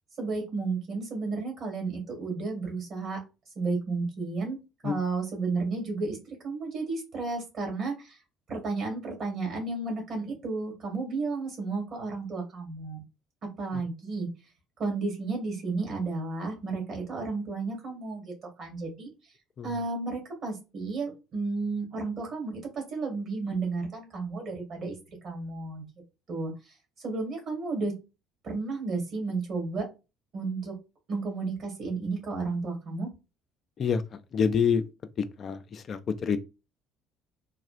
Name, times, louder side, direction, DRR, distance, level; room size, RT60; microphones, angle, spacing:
voice 1, 0.2-3.2 3.5-4.6 4.8-8.2 8.5-13.0 13.6-14.3 14.8-18.3 18.6-19.1 19.6-25.8 26.3-26.5 27.0-27.9 28.4-29.8 30.3-30.7 31.1-33.1, right 3 dB, 50° right, 1.8 m, -32 dB
voice 2, 34.3-34.8 35.4-36.4, left 6 dB, 45° left, 0.3 m, -26 dB
3.5 x 2.3 x 2.4 m
figure-of-eight pair, 55°, 0 cm